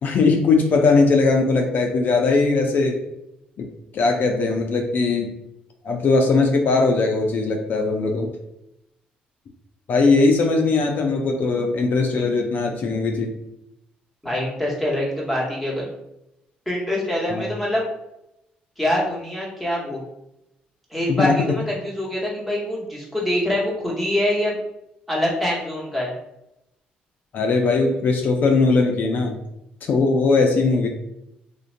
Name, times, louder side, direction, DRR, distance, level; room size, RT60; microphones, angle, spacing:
voice 1, 0.0-3.0 3.6-3.7 3.9-5.3 5.8-8.3 9.9-13.3 17.3-17.4 21.2-21.3 27.3-29.4 29.8-30.9, left 3 dB, 60° left, 2 dB, 0.4 m, -19 dB
voice 2, 14.2-15.9 16.7-17.8 18.8-20.0 20.9-24.6 25.1-26.1, left 1 dB, ahead, -5 dB, 1.1 m, -24 dB
2.4 x 2.1 x 2.5 m, 0.86 s
supercardioid pair, 70°, 4 cm